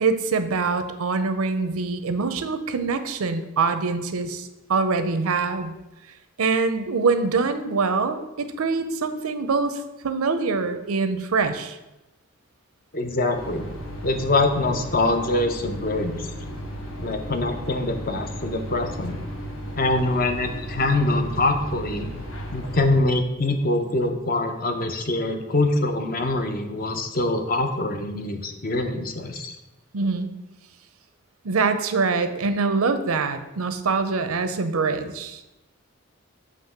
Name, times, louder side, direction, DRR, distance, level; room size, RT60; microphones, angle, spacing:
voice 1, 0.0-5.7 6.4-11.8 29.9-30.3 31.4-35.4, right 4 dB, 90° right, 10 dB, 0.6 m, -24 dB
voice 2, 12.9-13.7 14.0-16.3 17.0-19.2 19.8-22.2 22.5-29.6, left 2 dB, 40° left, 6 dB, 0.6 m, -24 dB
sound 1, 13.3-23.0, equal, 80° left, 1.2 m, -35 dB
7.5 x 3.0 x 5.8 m, 0.98 s
head